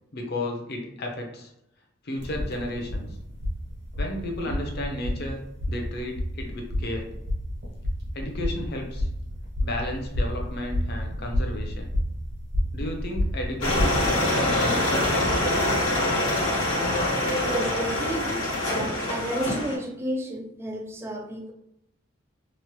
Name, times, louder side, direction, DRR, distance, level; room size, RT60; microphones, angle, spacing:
voice 1, 0.1-1.5 2.0-3.2 4.0-5.4 5.7-7.1 8.1-9.1 9.6-11.9 12.7-15.4, left 1 dB, 55° left, 2 dB, 0.6 m, -33 dB
sound 1, 2.2-14.1, left 1 dB, 65° right, 1.1 m, -30 dB
sound 2, 13.6-19.8, left 1 dB, 85° left, 1.2 m, -25 dB
voice 2, 17.4-21.5, right 1 dB, 10° right, 1 dB, 0.3 m, -32 dB
3.0 x 2.0 x 3.0 m, 0.80 s
head